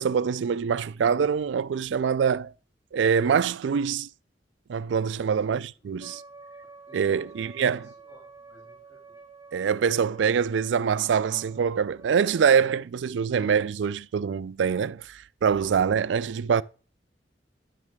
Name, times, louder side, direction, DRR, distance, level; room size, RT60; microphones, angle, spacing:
voice 1, 0.0-2.5 2.9-4.1 4.7-6.2 6.9-7.8 9.5-16.6, right 7 dB, 75° right, 0.4 m, -24 dB
Wind instrument woodwind instrument, 6.0-12.6, right 4 dB, 15° right, 1.7 m, -49 dB
voice 2, 6.9-9.2 15.5-15.8, left 1 dB, 20° left, 3.1 m, -53 dB
9.5 x 6.3 x 3.6 m
head